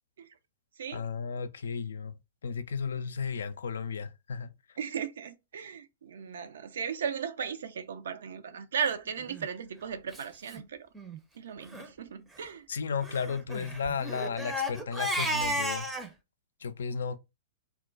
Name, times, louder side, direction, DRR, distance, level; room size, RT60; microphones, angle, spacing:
voice 1, 0.9-2.1 2.4-4.5 12.7-15.9 16.6-17.2, left 5 dB, 70° left, 0.3 m, -34 dB
voice 2, 4.8-10.9 11.4-12.7, right 7 dB, 65° right, 0.4 m, -36 dB
Crying sobbing, 9.2-9.5 10.1-10.2 10.5-10.6 10.9-11.2 11.6-11.9 13.0-16.1, equal, 10° right, 0.5 m, -33 dB
2.2 x 2.1 x 3.7 m
figure-of-eight pair, 105°, 0 cm